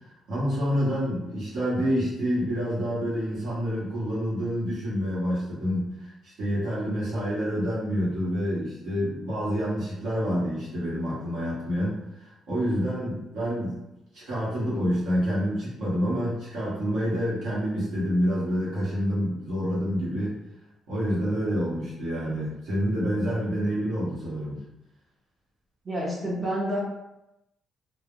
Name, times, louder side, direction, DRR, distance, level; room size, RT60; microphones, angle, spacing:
voice 1, 0.0-13.8 14.1-20.4 20.9-24.6, equal, 75° right, -9 dB, 1.0 m, -28 dB
voice 2, 25.8-26.8, equal, 30° right, -6 dB, 0.8 m, -29 dB
3.2 x 2.0 x 2.3 m, 0.89 s
cardioid pair, 90°, 0 cm